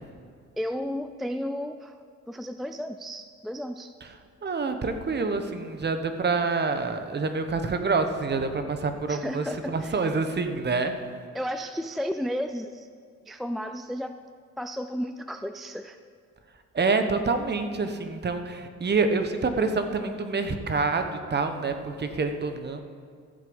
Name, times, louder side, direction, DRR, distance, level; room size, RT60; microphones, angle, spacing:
voice 1, 0.6-1.9 2.3-3.9 9.1-10.0 11.3-12.9 13.3-14.1 14.6-16.0, equal, ahead, 8 dB, 0.3 m, -33 dB
voice 2, 4.4-10.9 16.7-22.8, right 4 dB, 35° right, 7 dB, 1.1 m, -27 dB
14.0 x 7.4 x 5.3 m, 2.2 s
cardioid pair, 90°, 30 cm